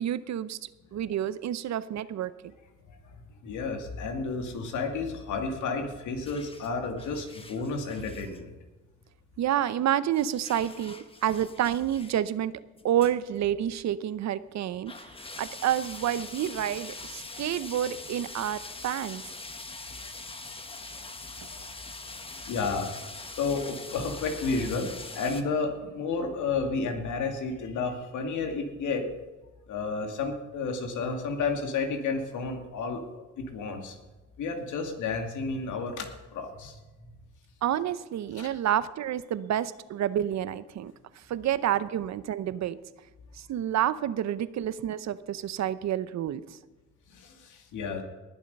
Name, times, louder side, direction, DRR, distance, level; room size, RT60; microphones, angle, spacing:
voice 1, 0.0-2.3 9.4-12.5 12.8-19.2 37.6-42.8 43.3-46.6, right 11 dB, 65° right, 16 dB, 0.7 m, -29 dB
voice 2, 3.4-8.5 22.5-22.9 23.3-29.1 29.7-34.0 34.4-36.8 38.4-38.5 47.1-48.0, left 4 dB, 80° left, 4 dB, 2.3 m, -31 dB
sound 1, 6.2-8.4 10.1-12.2 12.8-13.1 13.4-13.5 14.3-14.4 14.9-25.4, left 3 dB, 20° left, 1.3 m, -43 dB
19.5 x 7.3 x 5.3 m, 1.2 s
cardioid pair, 90°, 30 cm